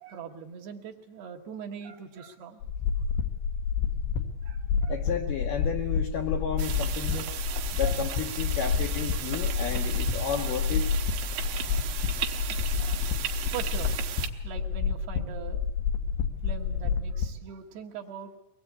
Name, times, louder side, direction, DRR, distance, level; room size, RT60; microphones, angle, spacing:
voice 1, 0.0-2.6 4.4-5.0 7.1-8.0 9.3-9.4 10.9-11.0 12.4-13.0 13.4-14.0 14.4-15.6 16.4-18.3, right 7 dB, 70° right, 2 dB, 3.3 m, -42 dB
sound 1, 2.6-17.3, left 6 dB, 90° left, 3.7 m, -29 dB
voice 2, 4.9-7.3 7.7-10.9, left 8 dB, 70° left, 2 dB, 2.2 m, -32 dB
sound 2, 6.6-14.3, right 11 dB, 85° right, 3.5 m, -36 dB
23.0 x 20.0 x 8.3 m, 0.94 s
omnidirectional pair, 5.1 m